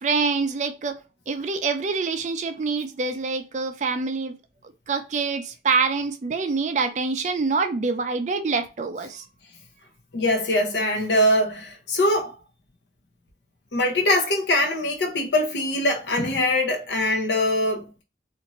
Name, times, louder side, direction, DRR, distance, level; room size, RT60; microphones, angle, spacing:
voice 1, 0.0-1.0 1.3-4.4 4.9-9.2, right 4 dB, 40° right, 0.4 m, -25 dB
voice 2, 10.1-12.4 13.7-18.0, left 1 dB, 80° left, 0.8 m, -22 dB
2.6 x 2.5 x 2.9 m
head